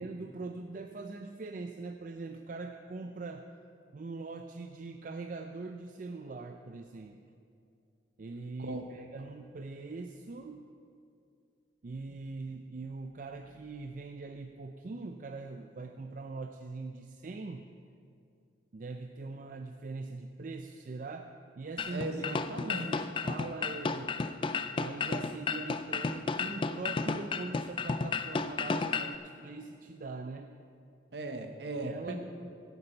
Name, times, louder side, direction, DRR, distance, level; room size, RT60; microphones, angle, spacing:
voice 1, 0.0-3.5 3.9-7.2 8.2-10.7 11.8-17.7 18.7-24.2 24.8-30.5 31.8-32.1, right 3 dB, 45° right, 5 dB, 0.4 m, -42 dB
voice 2, 8.6-8.9 21.9-23.1 31.1-32.1, right 2 dB, 65° right, 6 dB, 1.0 m, -37 dB
sound 1, 21.8-29.1, left 4 dB, 30° left, 0.3 m, -33 dB
16.5 x 8.1 x 4.4 m, 2.4 s
head